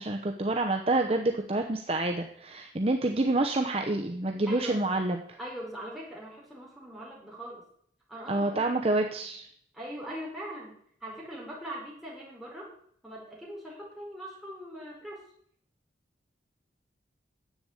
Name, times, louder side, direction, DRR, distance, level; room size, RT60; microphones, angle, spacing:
voice 1, 0.0-5.4 8.3-9.5, right 2 dB, 35° right, 3 dB, 0.8 m, -28 dB
voice 2, 4.5-4.8 5.4-7.7 8.1-9.3 9.7-10.7 11.0-12.7 13.0-15.2, equal, ahead, -5 dB, 4.8 m, -41 dB
10.5 x 8.0 x 8.2 m, 0.64 s
head